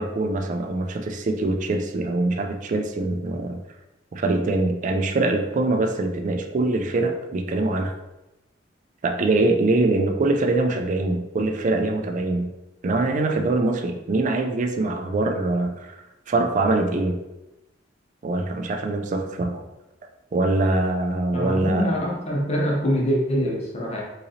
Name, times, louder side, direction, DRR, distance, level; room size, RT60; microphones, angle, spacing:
voice 1, 0.0-3.6 4.1-7.9 9.0-12.5 12.8-17.2 18.2-19.6 20.3-21.9, right 2 dB, 45° right, 4 dB, 0.4 m, -23 dB
voice 2, 21.3-24.0, equal, 35° left, -3 dB, 0.7 m, -24 dB
3.8 x 2.9 x 2.7 m, 0.98 s
head